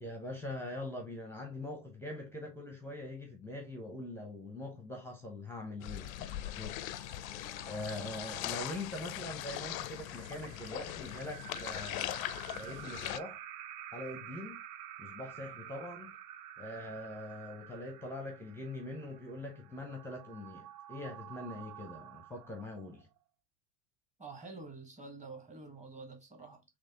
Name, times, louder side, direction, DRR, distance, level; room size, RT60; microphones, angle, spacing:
voice 1, 0.0-7.2 7.7-12.2 12.5-13.4 13.9-14.6 15.0-16.1 16.6-23.1, left 1 dB, 5° left, 0.7 m, -43 dB
sound 1, 5.8-13.2, left 14 dB, 65° left, 0.5 m, -40 dB
sound 2, 5.8-23.2, right 11 dB, 45° right, 0.5 m, -50 dB
voice 2, 24.2-26.6, right 3 dB, 15° right, 1.2 m, -48 dB
4.1 x 2.9 x 2.8 m
hypercardioid pair, 85°, 46 cm